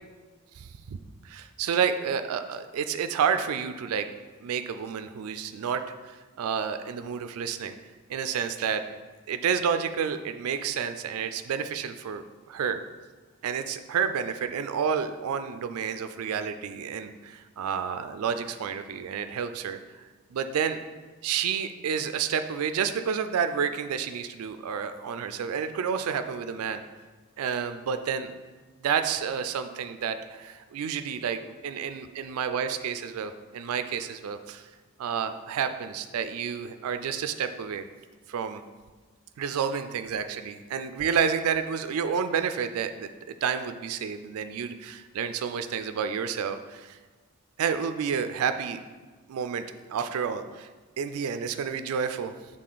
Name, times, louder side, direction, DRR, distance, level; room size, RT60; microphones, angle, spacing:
voice 1, 1.2-4.1 4.4-7.7 8.1-8.8 9.3-12.2 12.5-12.8 13.4-19.8 20.3-20.8 21.2-26.8 27.4-28.3 28.8-34.7 35.0-37.8 38.3-38.6 39.4-47.0 47.6-48.8 49.3-49.6 49.9-50.7 51.0-52.3, right 7 dB, 80° right, 9 dB, 0.3 m, -30 dB
6.5 x 3.7 x 3.9 m, 1.3 s
head